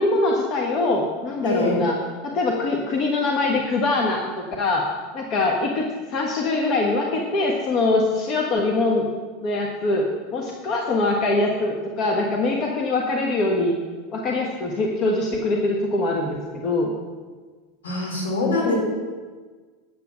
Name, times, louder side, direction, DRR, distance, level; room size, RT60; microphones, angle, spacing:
voice 1, 0.0-1.9 2.2-9.0 9.4-13.8 14.1-16.9 18.6-18.8, left 2 dB, 40° left, 0 dB, 1.4 m, -23 dB
voice 2, 1.4-1.8 17.8-18.8, left 2 dB, 70° left, -2 dB, 4.1 m, -23 dB
9.5 x 8.0 x 6.2 m, 1.4 s
figure-of-eight pair, 80°, 0 cm